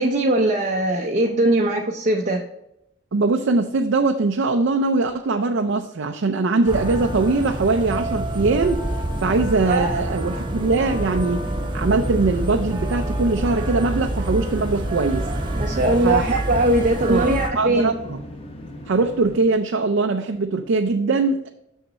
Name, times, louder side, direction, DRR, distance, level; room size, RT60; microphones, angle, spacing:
voice 1, 0.0-2.4 9.7-10.0 15.5-17.9, right 1 dB, 40° right, 0 dB, 0.6 m, -20 dB
voice 2, 3.1-8.8 9.2-11.4 11.7-15.3 15.9-16.3 17.1-18.2 18.9-21.5, right 3 dB, 90° right, 5 dB, 0.5 m, -21 dB
sound 1, 6.7-17.5, right 1 dB, 25° right, 1.0 m, -27 dB
sound 2, 9.5-19.4, left 1 dB, 30° left, 1.0 m, -38 dB
6.8 x 6.5 x 4.0 m, 0.81 s
head